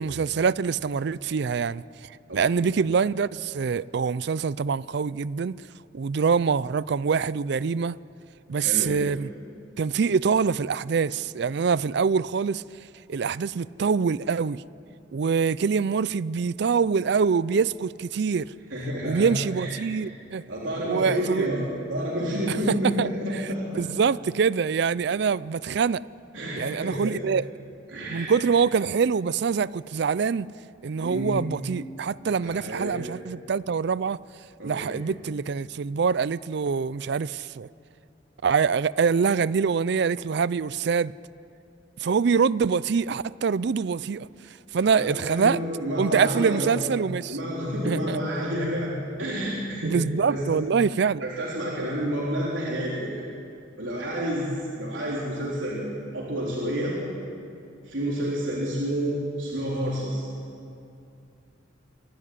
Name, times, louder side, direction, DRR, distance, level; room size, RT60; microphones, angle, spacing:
voice 1, 0.0-5.6 5.9-8.0 8.5-9.3 9.8-12.6 13.1-14.6 15.1-18.5 19.0-20.4 20.8-21.5 22.5-23.1 23.8-26.0 26.6-27.5 28.1-30.5 30.8-34.2 34.6-37.7 38.4-41.1 42.0-44.3 44.7-45.6 46.0-47.4 47.8-48.2 49.8-51.3, right 5 dB, 60° right, 0.4 m, -25 dB
voice 2, 2.3-2.6 8.5-9.0 18.7-19.7 20.5-23.8 26.3-27.2 27.9-28.3 31.0-31.3 32.4-33.0 34.6-35.0 44.8-46.7 47.3-48.9 49.2-50.0 50.3-50.4 51.2-53.3 53.8-54.5 54.8-55.9 56.1-57.0 57.8-60.2, equal, 80° right, 3.9 m, -29 dB
26.5 x 12.5 x 9.7 m
head